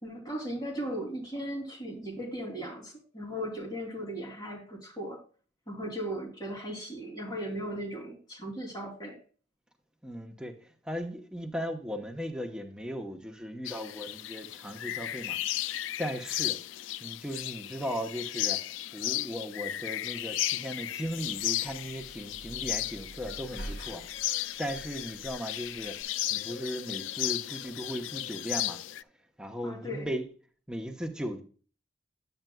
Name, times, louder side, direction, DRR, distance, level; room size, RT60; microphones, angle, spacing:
voice 1, 0.0-5.2 5.7-9.1 29.6-30.1, equal, 20° left, 3.1 m, -37 dB
voice 2, 10.0-15.4 16.0-16.6 17.0-18.6 18.9-28.8 29.4-30.2 30.7-31.4, equal, 5° right, 1.0 m, -37 dB
sound 1, 13.7-29.0, left 14 dB, 75° left, 0.3 m, -35 dB
sound 2, 21.0-26.0, right 1 dB, 55° left, 2.1 m, -46 dB
9.6 x 9.1 x 2.3 m
head